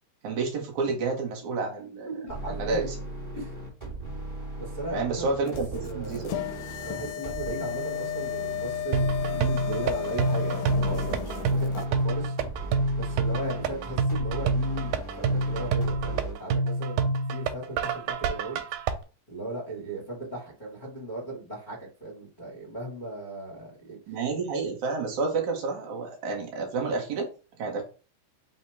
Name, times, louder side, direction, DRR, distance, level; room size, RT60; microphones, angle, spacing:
voice 1, 0.2-2.1 2.5-3.0 4.9-6.4 24.1-27.3 27.6-27.8, right 4 dB, 70° right, 0 dB, 2.1 m, -30 dB
voice 2, 2.1-2.9 3.3-3.5 4.6-5.4 5.8-6.4 6.8-12.7 12.9-18.6 19.3-24.0, right 2 dB, 65° left, -3 dB, 0.4 m, -37 dB
sound 1, 2.3-16.3, right 2 dB, 30° right, 0.5 m, -38 dB
sound 2, 5.5-11.9, left 13 dB, 80° left, 1.7 m, -34 dB
sound 3, 8.9-18.9, right 3 dB, 85° right, 2.1 m, -27 dB
5.3 x 2.1 x 4.5 m, 0.34 s
omnidirectional pair, 3.8 m